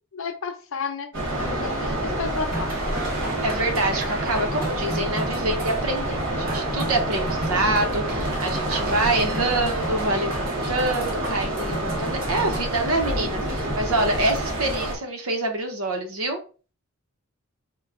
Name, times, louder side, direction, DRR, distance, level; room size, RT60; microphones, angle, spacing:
voice 1, 0.1-1.1 1.4-2.7, left 4 dB, 65° left, 6 dB, 0.6 m, -31 dB
sound 1, 1.1-15.0, right 1 dB, 60° right, 1.2 m, -28 dB
sound 2, 2.5-12.6, right 2 dB, 45° right, 1.0 m, -34 dB
voice 2, 3.4-16.4, right 2 dB, 85° right, 4 dB, 0.9 m, -26 dB
3.0 x 2.3 x 3.6 m, 0.35 s
head